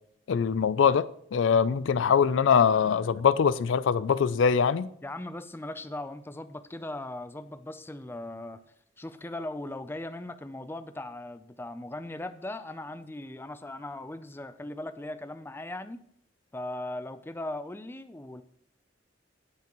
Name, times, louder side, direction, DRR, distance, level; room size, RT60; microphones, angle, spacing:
voice 1, 0.3-4.9, left 6 dB, 75° left, 0.4 m, -23 dB
voice 2, 5.0-8.6 9.0-16.0 16.5-18.4, left 1 dB, 10° left, 0.4 m, -38 dB
17.5 x 5.9 x 3.0 m
head